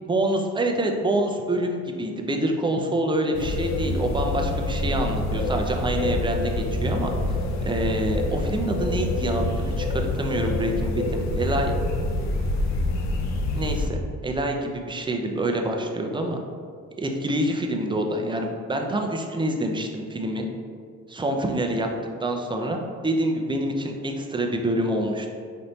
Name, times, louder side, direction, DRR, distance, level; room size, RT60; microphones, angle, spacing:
voice 1, 0.0-7.1 7.7-11.7 13.5-16.4 17.0-20.5 21.1-21.9 22.2-25.3, right 1 dB, 15° right, 2 dB, 0.4 m, -26 dB
sound 1, 3.3-13.9, left 2 dB, 65° left, 0.5 m, -26 dB
4.2 x 3.1 x 2.7 m, 2.1 s
cardioid pair, 90°, 30 cm